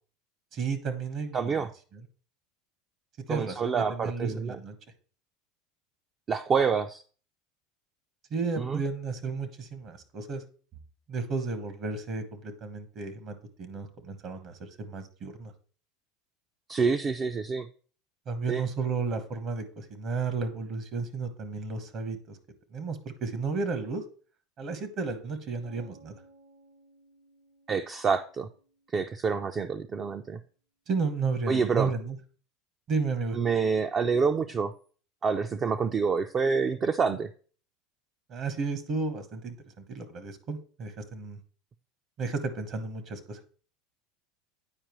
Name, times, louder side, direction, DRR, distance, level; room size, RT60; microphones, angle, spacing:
voice 1, 0.5-2.0 3.3-4.7 8.3-10.4 11.1-15.5 18.3-22.4 22.7-24.0 24.6-26.1 30.9-32.2 32.9-33.4 38.3-39.6 39.9-41.4 42.2-43.4, right 4 dB, 50° right, 10 dB, 1.1 m, -33 dB
voice 2, 1.3-1.7 3.3-4.6 6.3-7.0 8.6-8.8 16.7-17.7 18.5-18.6 27.7-28.5 28.9-30.4 31.5-31.9 33.4-34.7 35.2-37.3, right 5 dB, 30° right, 7 dB, 0.4 m, -27 dB
sound 1, 25.6-29.5, right 2 dB, 85° right, 1.9 m, -59 dB
8.8 x 4.7 x 3.0 m, 0.40 s
supercardioid pair, 110°, 0 cm